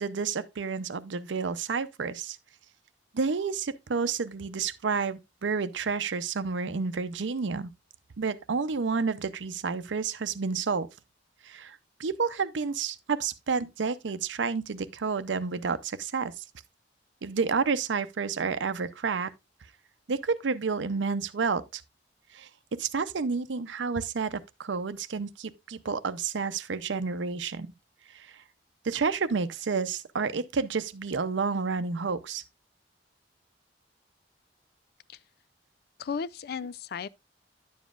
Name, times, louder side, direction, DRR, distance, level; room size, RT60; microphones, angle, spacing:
voice 1, 0.0-2.4 3.1-7.7 8.2-10.9 11.4-16.4 17.2-19.3 20.1-21.8 22.3-22.5 22.8-27.7 28.1-28.3 28.8-32.4, right 5 dB, 85° right, 0.6 m, -30 dB
voice 2, 36.0-37.1, left 6 dB, 55° left, 0.4 m, -35 dB
10.0 x 7.2 x 2.4 m
head